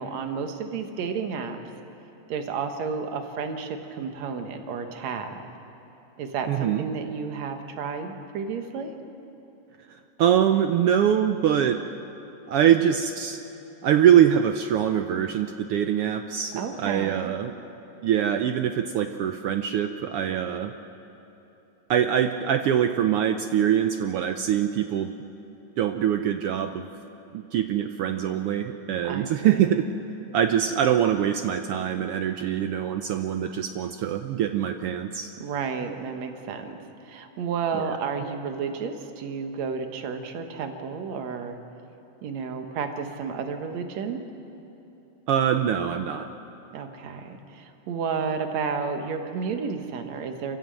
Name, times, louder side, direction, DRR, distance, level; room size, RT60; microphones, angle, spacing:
voice 1, 0.0-1.6 2.3-5.4 6.2-8.9 16.6-17.3 29.0-29.6 35.4-36.8 37.0-41.6 42.2-44.2 46.7-50.6, right 5 dB, 70° right, 6 dB, 2.5 m, -31 dB
voice 2, 6.5-6.8 9.9-11.8 12.5-13.4 13.8-17.5 18.0-20.7 21.9-25.1 25.8-26.9 27.3-29.9 30.3-35.3 37.7-38.0 45.3-46.3, right 9 dB, 85° right, 7 dB, 1.3 m, -23 dB
27.0 x 15.0 x 7.7 m, 3.0 s
omnidirectional pair, 3.4 m